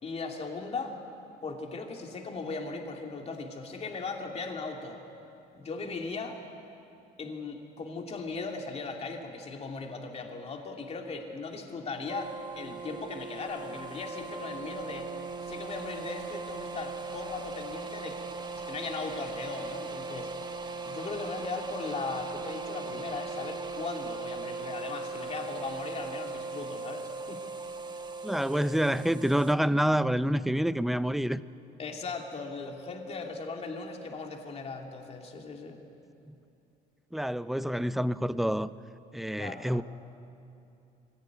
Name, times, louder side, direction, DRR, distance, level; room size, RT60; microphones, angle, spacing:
voice 1, 0.0-1.0 1.4-5.0 5.5-6.4 7.2-15.1 15.4-18.2 18.5-20.3 20.8-27.4 31.8-35.8 39.4-39.8, left 4 dB, 40° left, 2.6 m, -38 dB
sound 1, 12.1-29.6, right 4 dB, 25° right, 1.3 m, -39 dB
voice 2, 28.2-31.4 36.3-36.4 37.1-38.7 39.1-39.8, equal, ahead, 0.5 m, -27 dB
23.0 x 15.5 x 9.5 m
cardioid pair, 110°, 17 cm